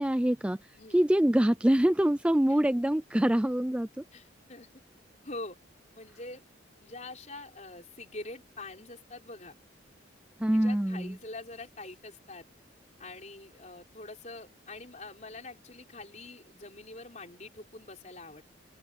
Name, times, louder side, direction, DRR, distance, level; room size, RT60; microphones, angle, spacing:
voice 1, 0.0-4.0 10.4-11.2, right 1 dB, 5° right, 0.3 m, -25 dB
voice 2, 4.1-4.7 5.2-5.6 5.9-6.4 6.8-9.5 10.5-12.5 13.0-18.4, left 2 dB, 35° left, 4.7 m, -44 dB
open air
head